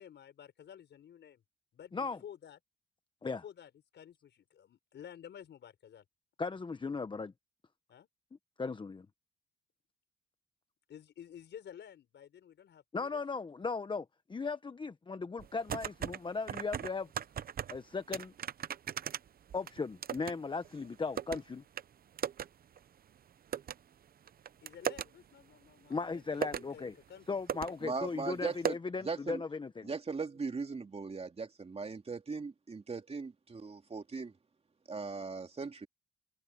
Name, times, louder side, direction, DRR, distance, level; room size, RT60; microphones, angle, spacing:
voice 1, 0.0-1.4 1.7-2.6 3.2-6.0 7.9-8.1 10.9-13.2 24.6-27.8, left 9 dB, 65° left, 5.5 m, -52 dB
voice 2, 6.4-7.3 8.6-9.1 12.9-17.1 17.7-18.3 19.5-21.6 25.9-27.0 27.3-29.9, left 4 dB, 25° left, 0.9 m, -37 dB
sound 1, 15.4-16.2 16.5-17.8 18.1-20.3 20.6-21.4 21.8-21.9 22.2-22.5 22.8-22.9 23.5-23.7 24.3-25.1 25.9-26.0 26.3-26.7 27.2-27.3 27.5-27.7 28.0-28.1 28.6-28.7, right 9 dB, 50° right, 0.8 m, -37 dB
voice 3, 27.8-28.8 29.0-29.4 29.8-34.3 34.9-35.9, right 4 dB, 30° right, 2.7 m, -39 dB
cardioid pair, 90°, 20 cm